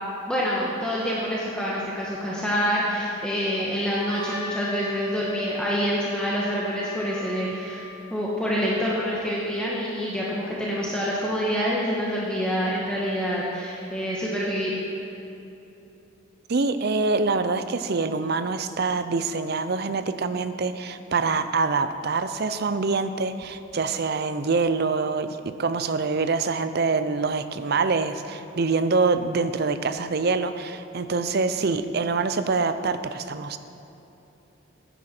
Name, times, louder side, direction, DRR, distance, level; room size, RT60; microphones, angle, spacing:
voice 1, 0.3-7.8 8.1-14.7, equal, 5° left, -6 dB, 1.3 m, -27 dB
Wind instrument woodwind instrument, 4.1-7.9, equal, 20° right, 1.3 m, -36 dB
voice 2, 16.5-33.6, right 4 dB, 50° right, 11 dB, 0.6 m, -25 dB
15.0 x 10.0 x 4.4 m, 2.9 s
head